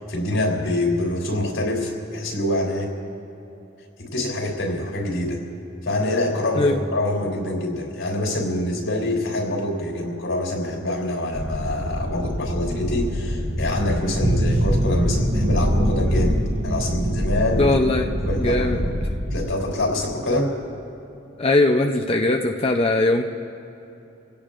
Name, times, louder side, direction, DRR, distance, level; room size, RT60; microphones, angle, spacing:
voice 1, 0.0-2.9 4.0-5.4 5.8-17.7 18.2-19.0 19.3-20.5, left 1 dB, 85° left, 0 dB, 3.6 m, -25 dB
sound 1, 11.3-19.5, equal, 75° right, 2.5 m, -24 dB
voice 2, 17.6-18.0 18.4-18.9 21.4-23.2, left 2 dB, 30° left, 2 dB, 0.6 m, -20 dB
26.0 x 17.0 x 2.5 m, 2.8 s
head